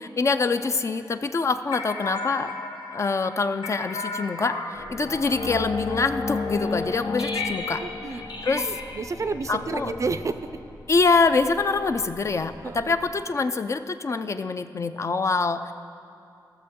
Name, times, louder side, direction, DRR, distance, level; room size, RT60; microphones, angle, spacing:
voice 1, 0.0-2.5 2.9-7.8 8.4-8.8 9.5-9.9 10.9-15.7, left 4 dB, 40° left, 10 dB, 0.3 m, -25 dB
sound 1, 1.7-10.6, left 3 dB, 80° left, 0.9 m, -32 dB
sound 2, 4.7-13.2, left 1 dB, 65° left, 1.3 m, -46 dB
voice 2, 7.8-10.4 12.6-13.0, right 4 dB, 40° right, 11 dB, 0.4 m, -31 dB
16.5 x 6.8 x 3.6 m, 2.5 s
wide cardioid pair, 130°, 8 cm